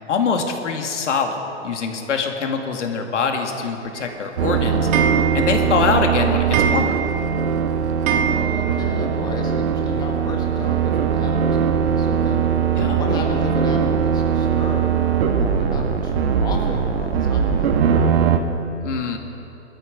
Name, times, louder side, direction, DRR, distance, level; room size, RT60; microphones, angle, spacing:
voice 1, 0.1-4.9 5.3-7.0 12.8-13.0 18.8-19.2, left 5 dB, 80° left, 3 dB, 2.2 m, -23 dB
Clock, 4.0-9.0 9.4-9.5 9.7-9.8 10.0-10.1 11.3-11.4 11.9-12.0 12.6-12.7 13.2-13.3 13.8-13.9 14.5-14.6, right 7 dB, 20° right, 0.7 m, -26 dB
sound 1, 4.4-18.4, right 7 dB, 55° right, 1.5 m, -20 dB
voice 2, 8.1-12.4 12.9-17.8, left 3 dB, 10° left, 1 dB, 1.3 m, -33 dB
21.5 x 13.5 x 4.9 m, 2.8 s
hypercardioid pair, 145°, 36 cm